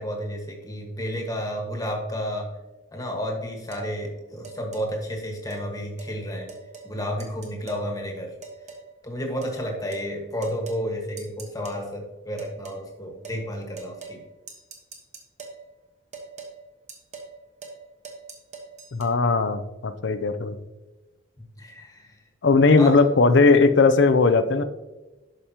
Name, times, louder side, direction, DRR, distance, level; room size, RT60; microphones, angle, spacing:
voice 1, 0.0-2.5 2.9-6.5 6.8-8.3 9.0-14.2 21.6-22.2 22.8-23.0, equal, 15° left, 1 dB, 1.4 m, -31 dB
sound 1, 3.7-3.9 4.4-4.9 5.5-5.6 6.0-6.1 6.5-6.9 7.2-7.9 8.4-8.9 9.4-9.6 9.9-10.1 10.4-10.8 11.2-11.8 12.4-12.8 13.2-13.4 13.8-14.2 14.5-15.6 16.1-16.5 16.9-17.3 17.6-17.8 18.0-19.1, right 4 dB, 35° right, 1.2 m, -41 dB
voice 2, 18.9-20.6 22.4-24.6, left 4 dB, 60° left, 11 dB, 0.5 m, -18 dB
11.5 x 5.1 x 2.9 m, 1.1 s
head